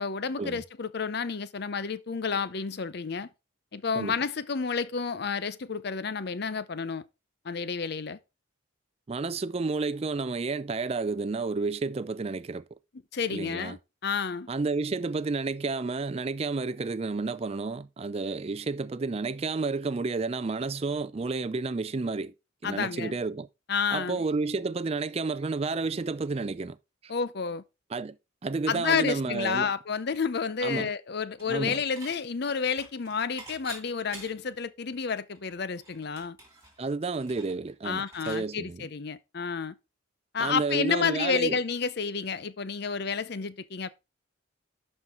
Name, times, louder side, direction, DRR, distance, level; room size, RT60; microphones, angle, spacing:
voice 1, 0.0-3.3 3.7-7.0 7.4-8.2 13.1-14.5 22.6-23.1 23.7-24.2 27.1-27.6 28.7-36.4 37.8-39.7 40.3-43.9, left 5 dB, 55° left, 0.6 m, -30 dB
voice 2, 9.1-12.6 13.3-13.7 14.5-22.3 22.6-23.5 23.9-26.8 27.9-28.2 28.4-29.7 30.6-30.9 31.5-31.8 36.8-38.9 40.4-41.6, right 3 dB, 30° right, 0.4 m, -31 dB
Dishes pots and pans / Chink clink, 31.4-32.2 32.4-34.6 35.0-35.1 35.3-38.5, right 2 dB, 15° right, 2.8 m, -48 dB
11.5 x 4.5 x 3.7 m
head